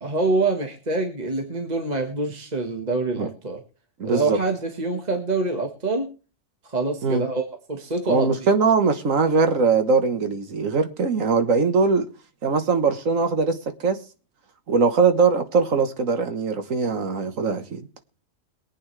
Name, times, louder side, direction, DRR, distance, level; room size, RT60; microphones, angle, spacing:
voice 1, 0.0-3.6 4.0-6.1 6.6-7.4 7.7-8.3, right 3 dB, 30° right, 1.6 m, -25 dB
voice 2, 4.0-4.4 7.0-7.2 8.1-12.1 12.4-14.0 14.7-17.8, right 4 dB, 75° right, 1.7 m, -21 dB
22.5 x 8.7 x 3.3 m
omnidirectional pair, 1.4 m